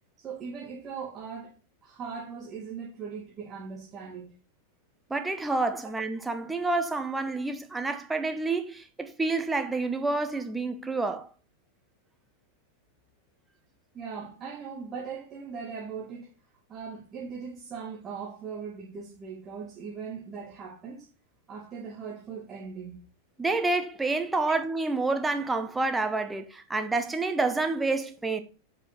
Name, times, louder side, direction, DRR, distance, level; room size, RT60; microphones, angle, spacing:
voice 1, 0.2-4.3 13.9-16.3 16.7-21.1 21.5-23.0, right 6 dB, 25° right, 1.8 m, -39 dB
voice 2, 5.1-11.3 23.4-28.4, right 3 dB, 10° right, 1.0 m, -28 dB
8.0 x 5.5 x 3.9 m
figure-of-eight pair, 90°, 0 cm